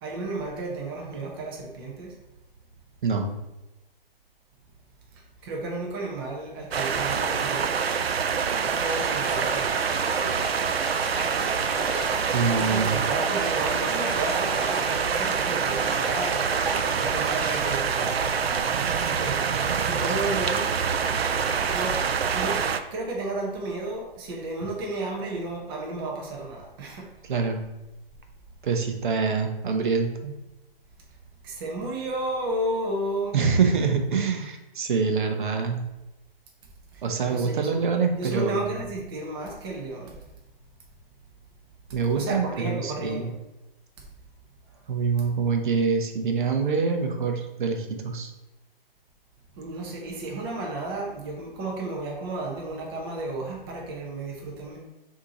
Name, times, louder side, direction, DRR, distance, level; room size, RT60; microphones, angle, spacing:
voice 1, 0.0-2.1 5.1-7.8 8.6-9.8 12.6-16.5 16.9-18.4 18.7-20.7 21.6-22.0 22.3-22.6 22.9-27.1 31.4-33.4 36.9-37.7 38.1-40.2 42.1-43.3 44.7-44.8 49.5-54.8, right 2 dB, 25° right, -1 dB, 0.7 m, -33 dB
sound 1, 6.7-22.8, right 6 dB, 90° right, 0.5 m, -26 dB
sound 2, 8.8-17.7, equal, ahead, 0.4 m, -37 dB
voice 2, 12.3-13.0 27.3-27.6 28.6-30.3 33.3-35.8 37.0-38.6 41.9-43.3 44.9-48.3, right 5 dB, 55° right, 4 dB, 0.8 m, -25 dB
6.0 x 2.8 x 2.9 m, 0.98 s
hypercardioid pair, 145°, 30 cm